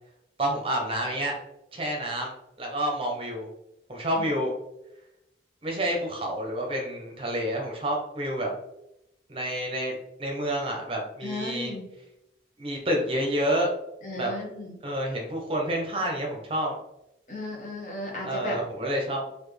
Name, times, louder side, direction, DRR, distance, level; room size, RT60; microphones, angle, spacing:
voice 1, 0.4-1.3 1.7-2.3 2.6-3.5 3.9-4.5 5.6-8.5 9.3-11.7 12.6-13.7 14.1-14.3 14.8-16.7 18.2-19.3, right 1 dB, 30° right, 0 dB, 0.7 m, -29 dB
voice 2, 11.2-11.9 14.0-14.8 17.3-18.6, left 2 dB, 45° left, -2 dB, 1.1 m, -35 dB
4.2 x 2.5 x 3.2 m, 0.86 s
head